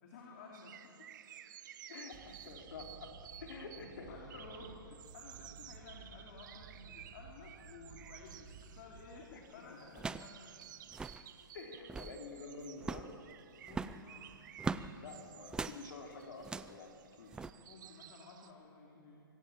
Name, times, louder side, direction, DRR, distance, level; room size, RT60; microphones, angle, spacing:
voice 1, 0.0-1.1 4.1-10.5 13.6-14.3 17.3-19.2, left 3 dB, 45° left, -1 dB, 3.3 m, -54 dB
sound 1, 0.5-18.5, right 11 dB, 55° right, 1.1 m, -55 dB
voice 2, 1.9-3.1 3.4-4.4 9.3-9.4 9.7-9.8 11.5-13.1 15.0-17.3, left 4 dB, 60° left, 2 dB, 3.9 m, -49 dB
sound 2, 2.1-9.2, right 5 dB, 25° right, 1.9 m, -56 dB
sound 3, 9.0-9.2 9.9-10.4 10.6-10.7 10.9-11.2 11.7-12.2 12.8-13.1 13.7-14.9 15.5-15.8 16.4-16.8 17.3-17.5, right 4 dB, 5° right, 0.4 m, -40 dB
24.5 x 15.0 x 7.5 m, 2.7 s
hypercardioid pair, 135°, 12 cm